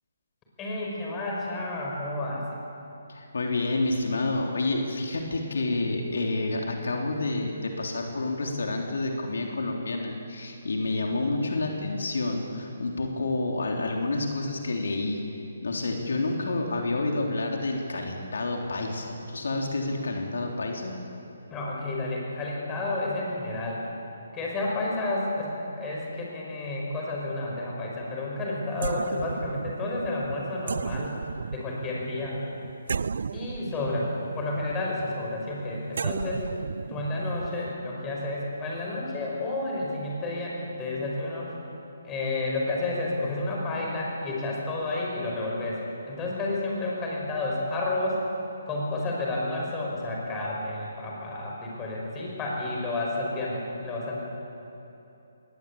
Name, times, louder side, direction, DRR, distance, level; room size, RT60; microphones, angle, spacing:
voice 1, 0.6-2.5 21.5-23.8 24.3-31.2 31.5-32.4 33.3-36.5 36.9-41.5 42.0-48.2 48.7-54.2, left 2 dB, 15° left, -3 dB, 5.4 m, -31 dB
voice 2, 3.1-15.2 15.6-20.9, left 2 dB, 80° left, 1 dB, 3.3 m, -29 dB
sound 1, 28.7-37.7, right 5 dB, 65° right, 0.5 m, -35 dB
21.5 x 18.5 x 8.6 m, 3.0 s
hypercardioid pair, 160°, 0 cm